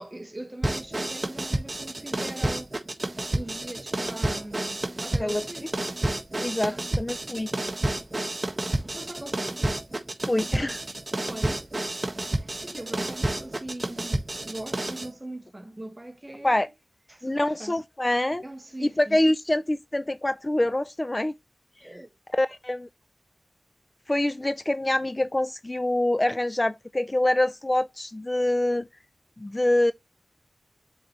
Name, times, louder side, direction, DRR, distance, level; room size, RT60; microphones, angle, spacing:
voice 1, 0.0-2.7 3.3-6.0 6.5-6.8 8.7-9.7 11.2-11.7 12.2-16.7 17.1-17.8 18.4-19.2 21.8-22.1, right 1 dB, 20° right, 1.0 m, -41 dB
sound 1, 0.6-15.1, right 1 dB, 40° right, 1.5 m, -30 dB
voice 2, 6.4-7.5 10.3-10.8 16.4-16.7 17.2-18.4 18.8-21.3 22.3-22.9 24.1-28.9 29.4-29.9, left 1 dB, 25° left, 0.3 m, -25 dB
7.5 x 4.1 x 3.1 m
wide cardioid pair, 55°, 0 cm